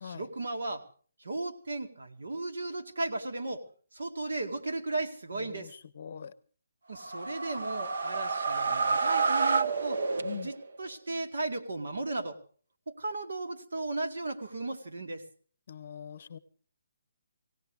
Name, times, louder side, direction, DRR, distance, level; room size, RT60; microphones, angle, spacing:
voice 1, 0.0-0.9 1.2-5.7 6.9-10.0 10.3-12.4 12.9-15.2, right 2 dB, 85° right, 4 dB, 2.2 m, -36 dB
voice 2, 5.3-6.3 10.2-10.5 15.7-16.4, left 7 dB, 40° left, 15 dB, 0.7 m, -43 dB
sound 1, 7.0-10.8, right 4 dB, 70° right, 0.9 m, -29 dB
19.5 x 17.5 x 3.5 m, 0.43 s
hypercardioid pair, 175°, 0 cm